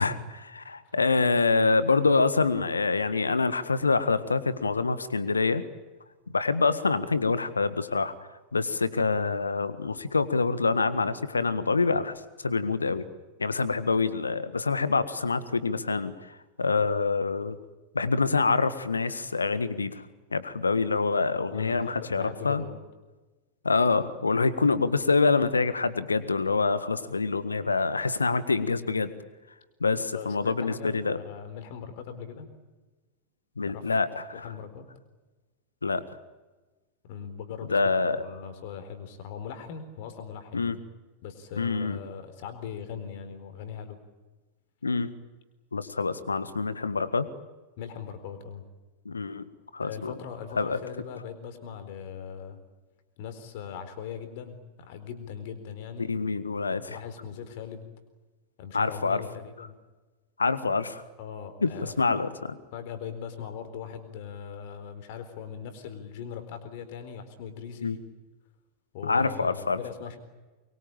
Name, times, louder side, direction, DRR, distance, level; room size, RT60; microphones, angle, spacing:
voice 1, 0.0-5.6 6.3-8.1 8.5-12.1 12.4-13.0 13.4-17.6 17.9-20.0 20.3-22.6 23.6-29.1 29.8-31.2 33.6-34.5 35.8-36.0 37.7-38.2 40.5-40.8 41.6-42.0 44.8-45.1 45.7-47.3 49.0-49.4 49.7-50.1 50.6-50.8 56.1-57.0 58.7-59.2 60.4-61.0 61.6-61.7 62.0-62.6 67.8-68.0 69.0-69.8, left 4 dB, 75° left, 14 dB, 1.5 m, -26 dB
voice 2, 21.5-22.8 30.1-32.5 33.7-33.9 34.3-34.9 37.1-40.7 41.2-44.0 47.8-48.6 49.8-52.6 53.2-56.1 56.9-57.9 58.6-59.8 61.2-61.9 62.7-68.0 68.9-70.2, left 7 dB, 50° left, 9 dB, 4.1 m, -40 dB
24.5 x 23.0 x 8.9 m, 1.2 s
figure-of-eight pair, 90°, 0 cm